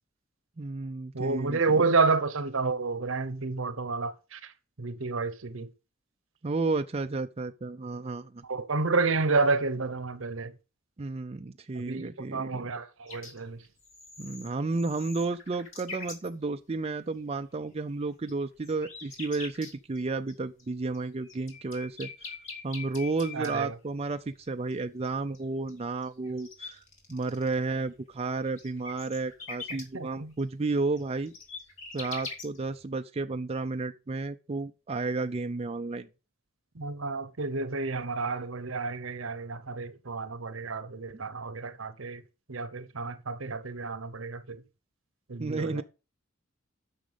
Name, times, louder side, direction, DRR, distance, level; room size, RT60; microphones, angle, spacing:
voice 1, 0.6-1.6 6.4-8.4 11.0-12.7 14.2-22.1 22.6-26.8 27.1-31.3 31.9-36.1 45.4-45.8, right 3 dB, 30° right, 0.5 m, -32 dB
voice 2, 1.1-4.5 4.8-5.7 8.4-10.5 11.7-13.6 23.3-23.8 29.7-30.3 36.7-42.2 42.5-44.6 45.3-45.8, right 4 dB, 75° right, 1.0 m, -30 dB
sound 1, 13.1-13.4 13.6-16.3 18.3-18.4 18.6-20.0 20.3-20.4 20.6-20.7 20.9-23.6 24.4-24.5 24.7-24.8 25.0-25.4 25.7-25.8 26.0-27.5 27.8-29.8 30.4-30.5 30.7-30.8 30.9-32.8, left 4 dB, 75° left, 2.9 m, -43 dB
10.0 x 6.3 x 5.1 m
head